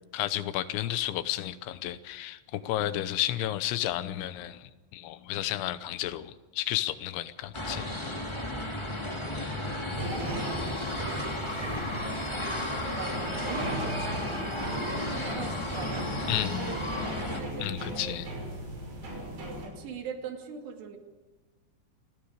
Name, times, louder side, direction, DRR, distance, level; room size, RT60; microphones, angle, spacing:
voice 1, 0.1-7.9 16.3-16.7 17.6-18.3, left 13 dB, 85° left, 13 dB, 3.2 m, -32 dB
sound 1, 7.5-17.4, left 1 dB, 15° left, 1.1 m, -33 dB
voice 2, 9.7-10.2 11.0-11.2 12.4-18.2 19.4-21.0, right 6 dB, 70° right, 4 dB, 4.2 m, -42 dB
sound 2, 10.0-19.7, right 1 dB, 85° right, 8.4 m, -38 dB
28.0 x 21.0 x 4.9 m, 1.2 s
omnidirectional pair, 5.3 m